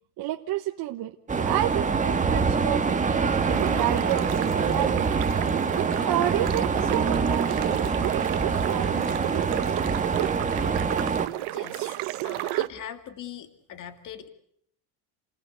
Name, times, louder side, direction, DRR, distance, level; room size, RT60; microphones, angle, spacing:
voice 1, 0.2-5.2 6.0-9.5 11.8-12.7, right 13 dB, 50° right, 4 dB, 1.3 m, -31 dB
sound 1, 1.3-11.3, right 5 dB, 15° right, 1.5 m, -25 dB
sound 2, 3.5-12.7, right 19 dB, 75° right, 1.2 m, -32 dB
voice 2, 11.5-12.0 12.2-14.3, left 9 dB, 40° left, 8 dB, 2.3 m, -41 dB
29.5 x 19.5 x 8.3 m, 0.67 s
cardioid pair, 160°, 48 cm